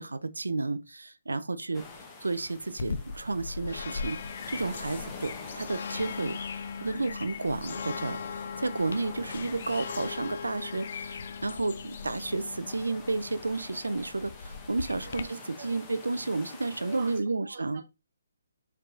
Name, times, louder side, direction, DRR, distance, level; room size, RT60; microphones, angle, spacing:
voice 1, 0.0-1.8 2.2-4.2 4.5-17.8, right 3 dB, 85° right, 0.5 m, -32 dB
sound 1, 1.7-17.2, left 3 dB, 20° left, 1.0 m, -47 dB
sound 2, 2.8-15.2, left 5 dB, 55° left, 0.5 m, -39 dB
sound 3, 5.5-6.5 8.5-9.6 10.9-11.8, left 2 dB, 75° left, 1.0 m, -53 dB
voice 2, 15.0-15.8 16.8-17.8, right 5 dB, 55° right, 1.2 m, -46 dB
4.7 x 4.6 x 2.5 m
figure-of-eight pair, 140°, 0 cm